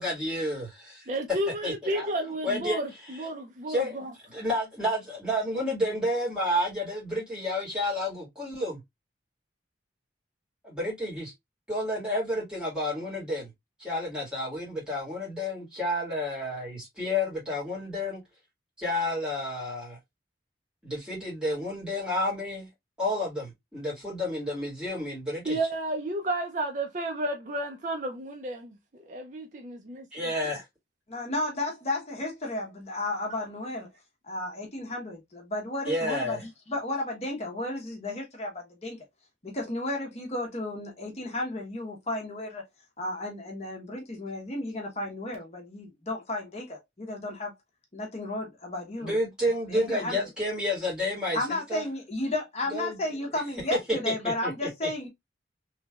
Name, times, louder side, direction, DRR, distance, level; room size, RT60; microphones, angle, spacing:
voice 1, 0.0-1.1 1.6-2.1 2.4-2.8 3.7-4.0 4.3-8.8 10.6-11.3 11.7-13.5 13.8-18.2 18.8-20.0 20.8-22.7 23.0-25.6 30.1-30.6 35.9-36.4 49.0-51.9 52.7-53.0 53.9-54.1 54.4-54.9, left 1 dB, 5° right, 1.8 m, -30 dB
voice 2, 1.1-4.1 25.4-30.1 33.3-33.5, right 1 dB, 45° right, 0.5 m, -32 dB
voice 3, 31.1-33.9 34.2-39.0 39.4-42.6 43.0-47.5 47.9-49.2 49.7-50.3 51.3-55.1, left 2 dB, 35° left, 0.9 m, -33 dB
3.2 x 3.0 x 2.3 m
head